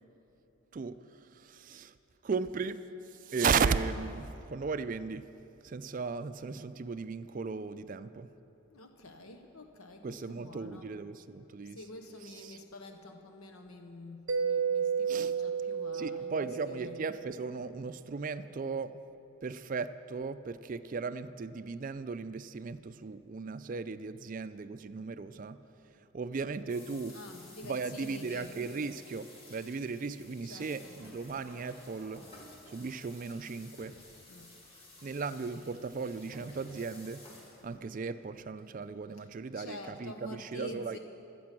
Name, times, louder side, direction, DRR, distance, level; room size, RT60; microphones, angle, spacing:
voice 1, 0.7-2.0 2.2-5.3 5.6-8.3 10.0-11.8 12.2-12.6 15.1-15.3 15.9-19.0 19.4-25.6 26.1-27.2 27.6-32.3 32.7-34.0 35.0-37.2 37.6-41.0, right 5 dB, 40° right, 12 dB, 0.3 m, -36 dB
voice 2, 8.7-11.0 11.6-17.1 23.7-23.8 27.1-28.5 30.4-31.0 34.3-34.5 39.2-41.0, left 1 dB, 80° left, 5 dB, 1.0 m, -48 dB
Mallet percussion, 14.3-17.8, right 6 dB, 70° right, 0.7 m, -33 dB
sound 1, 26.7-39.4, left 1 dB, 25° left, 2.4 m, -54 dB
25.5 x 8.6 x 6.0 m, 2.9 s
head